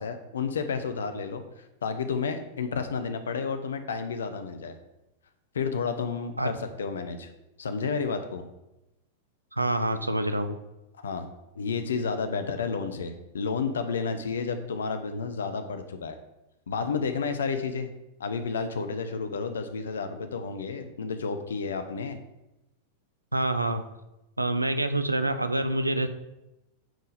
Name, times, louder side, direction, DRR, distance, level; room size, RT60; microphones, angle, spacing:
voice 1, 0.0-1.4 1.8-4.7 5.5-7.3 7.6-8.4 11.0-16.2 16.7-17.9 18.2-22.2, left 5 dB, 65° left, 8 dB, 0.9 m, -31 dB
voice 2, 9.5-10.6 23.3-23.8 24.4-26.1, right 1 dB, 85° right, 10 dB, 0.6 m, -26 dB
9.0 x 4.6 x 5.1 m, 0.95 s
figure-of-eight pair, 90°, 0 cm